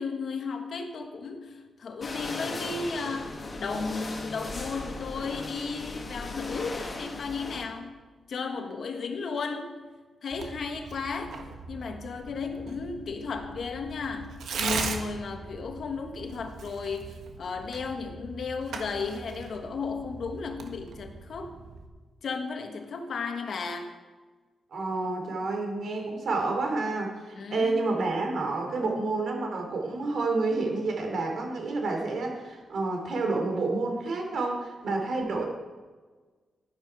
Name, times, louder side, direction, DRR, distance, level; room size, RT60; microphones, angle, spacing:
voice 1, 0.0-7.9 8.3-9.8 10.2-21.6 22.2-23.9 27.3-27.9, left 4 dB, 55° left, 6 dB, 1.3 m, -34 dB
sound 1, 2.0-7.7, left 2 dB, 30° left, 1.4 m, -37 dB
Tearing, 10.3-21.9, right 4 dB, 85° right, 1.3 m, -39 dB
voice 2, 24.7-35.4, right 3 dB, 60° right, 2 dB, 2.8 m, -29 dB
12.0 x 10.5 x 4.7 m, 1.4 s
wide cardioid pair, 150°, 0 cm